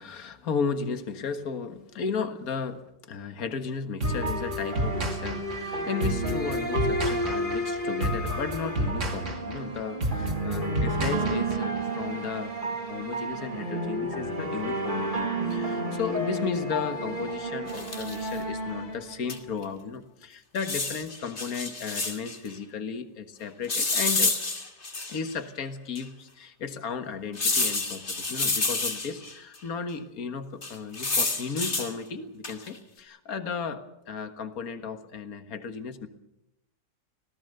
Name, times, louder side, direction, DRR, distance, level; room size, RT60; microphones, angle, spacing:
voice 1, 0.0-12.6 12.9-24.3 25.1-36.1, left 5 dB, 55° left, 8 dB, 2.0 m, -34 dB
sound 1, 4.0-19.5, right 1 dB, 25° right, 2.9 m, -31 dB
sound 2, 4.0-11.8, right 1 dB, 45° right, 3.1 m, -30 dB
sound 3, 17.7-18.3 19.3-19.4 19.6-19.7 20.5-22.4 23.7-25.3 25.9-26.0 27.3-29.3 30.6-31.9 32.4-32.8, left 3 dB, 40° left, 2.7 m, -29 dB
26.5 x 18.0 x 6.8 m, 0.84 s
omnidirectional pair, 1.9 m